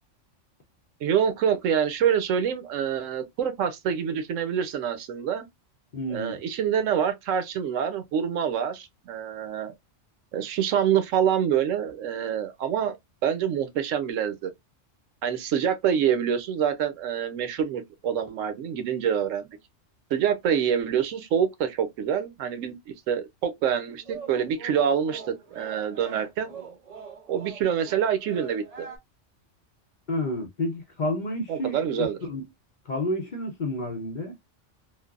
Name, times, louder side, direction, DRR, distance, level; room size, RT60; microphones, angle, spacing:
voice 1, 1.0-5.5 6.1-9.7 10.3-13.0 13.2-14.5 15.2-19.5 20.1-25.2 25.5-26.5 27.3-28.9 31.5-32.2, right 8 dB, 90° right, 1.0 m, -26 dB
voice 2, 5.9-6.4 30.1-32.4 32.9-34.4, left 1 dB, 45° left, 0.7 m, -30 dB
sound 1, 24.0-29.0, right 5 dB, 50° right, 0.4 m, -43 dB
3.2 x 2.1 x 2.3 m
omnidirectional pair, 1.3 m